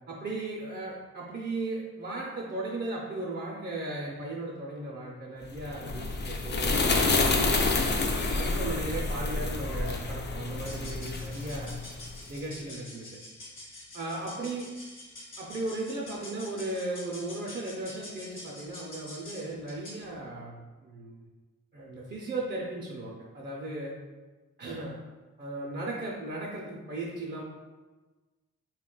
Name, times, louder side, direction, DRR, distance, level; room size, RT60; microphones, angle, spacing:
voice 1, 0.1-7.4 8.2-11.8 12.3-13.2 13.9-14.7 15.4-21.3 21.7-24.0 24.6-25.0 25.4-27.4, right 2 dB, 35° right, -4 dB, 0.5 m, -36 dB
sound 1, 5.6-12.2, left 3 dB, 35° left, 0.4 m, -28 dB
sound 2, 10.6-20.1, left 1 dB, 70° left, 1.1 m, -47 dB
4.0 x 2.3 x 3.7 m, 1.3 s
wide cardioid pair, 125°, 31 cm